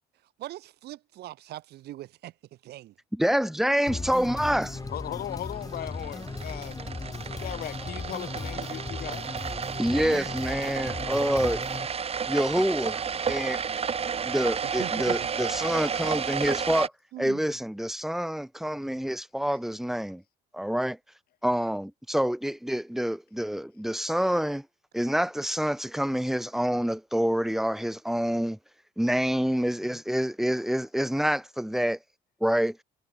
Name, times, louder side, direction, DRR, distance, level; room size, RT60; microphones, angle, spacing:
voice 1, 0.4-2.9 10.0-10.3 14.6-15.3 17.1-17.6 19.5-19.6, right 15 dB, 75° right, 3.0 m, -41 dB
voice 2, 3.1-4.8 9.8-11.7 12.3-13.0 13.3-13.6 14.3-16.9 17.2-20.2 20.5-21.0 21.4-24.7 24.9-28.6 29.0-32.0 32.4-32.8, equal, ahead, 1.9 m, -27 dB
sound 1, 3.9-11.9, left 3 dB, 20° left, 6.8 m, -37 dB
sound 2, 3.9-16.9, right 6 dB, 35° right, 3.0 m, -33 dB
voice 3, 4.9-6.8 7.3-9.3, left 12 dB, 65° left, 4.9 m, -37 dB
cardioid pair, 110°, 17 cm